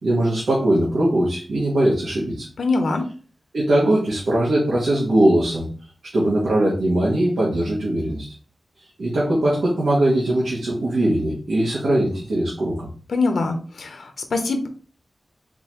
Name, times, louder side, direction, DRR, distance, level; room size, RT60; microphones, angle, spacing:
voice 1, 0.0-2.5 3.5-5.7 6.1-8.3 9.0-12.9, right 1 dB, 80° right, -5 dB, 1.3 m, -20 dB
voice 2, 2.6-3.1 13.1-14.7, left 3 dB, 85° left, 5 dB, 0.7 m, -23 dB
4.0 x 3.7 x 3.0 m, 0.41 s
wide cardioid pair, 125°, 0 cm